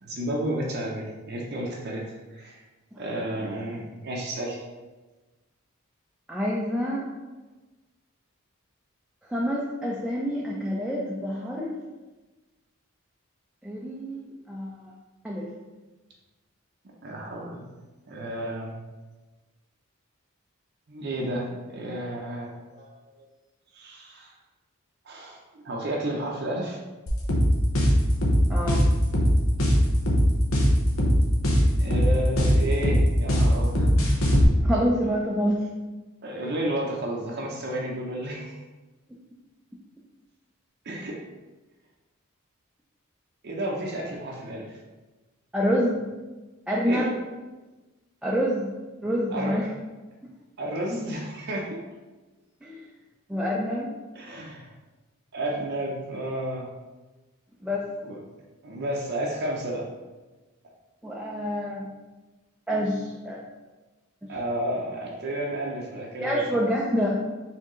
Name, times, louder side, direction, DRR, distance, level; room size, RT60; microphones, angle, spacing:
voice 1, 0.0-2.6 3.0-4.6 17.0-17.7 18.1-18.7 20.9-23.3 23.7-24.3 25.0-26.8 31.8-33.9 36.2-38.6 40.8-41.2 43.4-44.8 46.8-47.1 49.3-49.6 50.6-51.8 54.1-54.7 55.3-56.7 58.0-58.2 58.6-59.9 64.3-66.6, right 1 dB, 55° right, -2 dB, 0.6 m, -32 dB
voice 2, 6.3-7.0 9.3-11.8 13.6-14.9 15.2-15.5 28.5-28.8 34.6-35.7 45.5-46.1 46.7-47.1 48.2-48.7 49.0-49.6 52.6-52.8 53.3-53.9 57.6-57.9 61.0-61.9 62.7-63.4 66.2-67.2, equal, 5° right, -4 dB, 0.4 m, -27 dB
sound 1, 27.1-34.4, equal, 75° left, 0.9 m, -20 dB
4.5 x 3.5 x 3.0 m, 1.2 s
head